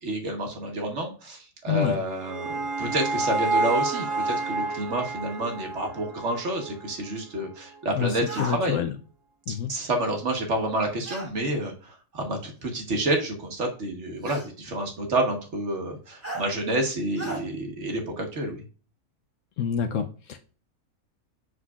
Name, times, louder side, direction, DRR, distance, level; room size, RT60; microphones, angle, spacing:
voice 1, 0.0-8.8 9.5-18.6, right 1 dB, 50° right, 3 dB, 1.4 m, -29 dB
voice 2, 1.7-2.0 8.0-8.1 8.4-8.9 9.5-9.7 19.6-20.4, left 8 dB, 70° left, 7 dB, 0.9 m, -27 dB
sound 1, 1.9-7.0, right 3 dB, 90° right, 1.5 m, -29 dB
sound 2, 8.2-8.6 11.0-11.3 12.6-12.7 14.2-14.5 16.2-16.5 17.2-17.4, right 1 dB, 10° right, 1.1 m, -35 dB
7.8 x 5.9 x 2.3 m, 0.38 s
omnidirectional pair, 1.6 m